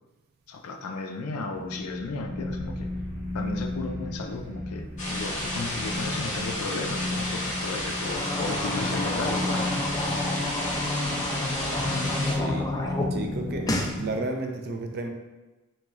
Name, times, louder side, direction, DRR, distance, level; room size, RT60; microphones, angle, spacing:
voice 1, 0.5-2.9 3.3-9.9, left 3 dB, 85° left, 4 dB, 0.4 m, -35 dB
Number one, 1.4-14.1, left 2 dB, 65° right, 0.9 m, -33 dB
Waterfall loud, 5.0-12.3, left 1 dB, 35° left, 0.9 m, -32 dB
sound 1, 8.0-13.1 13.4-13.9, left 1 dB, 15° left, 0.3 m, -31 dB
voice 2, 12.3-12.7 13.1-15.1, right 2 dB, 50° right, 3 dB, 0.4 m, -32 dB
3.5 x 2.9 x 3.1 m, 1.1 s
head